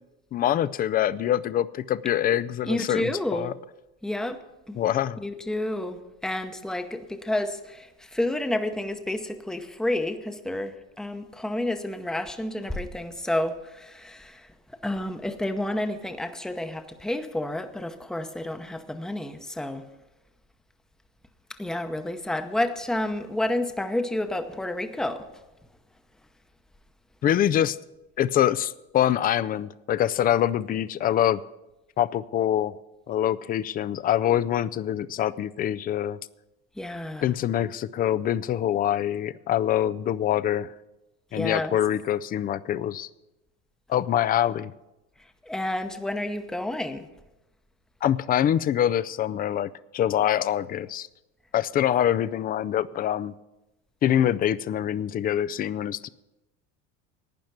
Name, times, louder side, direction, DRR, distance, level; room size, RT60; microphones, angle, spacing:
voice 1, 0.3-3.5 4.8-5.2 27.2-27.8 28.2-31.4 32.0-32.8 33.1-36.2 37.2-40.7 41.3-43.1 43.9-44.7 48.0-51.1 51.5-53.3 54.0-56.1, left 11 dB, 30° left, 17 dB, 0.4 m, -25 dB
voice 2, 2.7-3.5 4.0-4.8 5.2-14.5 14.8-19.9 21.6-25.3 36.8-37.3 41.4-41.8 45.4-47.1, left 1 dB, ahead, 8 dB, 0.8 m, -30 dB
12.0 x 9.2 x 5.9 m, 0.98 s
supercardioid pair, 110°, 32 cm